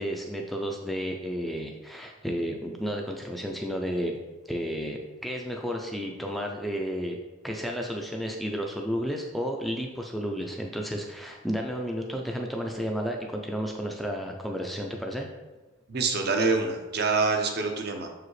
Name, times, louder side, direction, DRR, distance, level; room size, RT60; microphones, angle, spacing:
voice 1, 0.0-4.2 4.5-7.2 7.4-15.3, equal, ahead, 1 dB, 0.4 m, -32 dB
voice 2, 15.9-18.1, right 4 dB, 50° right, 4 dB, 0.7 m, -26 dB
6.6 x 4.8 x 3.2 m, 1.2 s
head